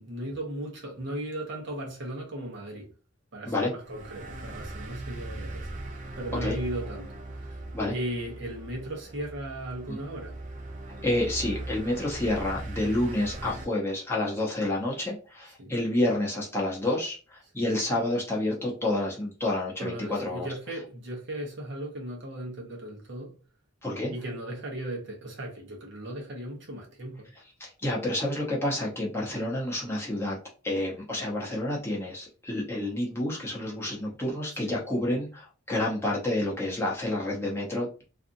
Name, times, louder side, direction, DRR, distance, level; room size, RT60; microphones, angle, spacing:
voice 1, 0.0-2.9 3.3-5.7 6.2-7.1 7.4-7.6 7.9-10.3 15.6-15.7 19.8-23.3 24.1-27.3 34.7-34.8, right 1 dB, 60° right, 0.9 m, -37 dB
sound 1, 3.8-13.6, right 2 dB, 40° right, 0.5 m, -39 dB
voice 2, 11.0-20.5 23.8-24.1 27.6-30.4 30.6-38.0, left 1 dB, 10° left, 0.7 m, -29 dB
2.6 x 2.4 x 2.6 m
head